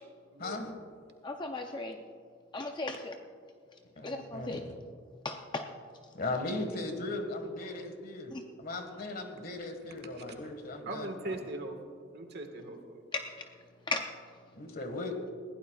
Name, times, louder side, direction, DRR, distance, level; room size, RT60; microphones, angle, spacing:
voice 1, 0.4-0.7 4.0-4.7 6.1-11.4 14.5-15.2, left 2 dB, 50° left, 5 dB, 1.7 m, -38 dB
voice 2, 1.2-2.0 2.5-3.1 4.0-4.6 5.2-5.6 8.3-8.4 13.1-13.2 13.9-14.1, left 3 dB, 25° left, 4 dB, 0.5 m, -36 dB
voice 3, 10.8-11.8 12.1-13.0, right 2 dB, 55° right, 5 dB, 1.6 m, -40 dB
21.0 x 16.0 x 2.4 m, 2.2 s
head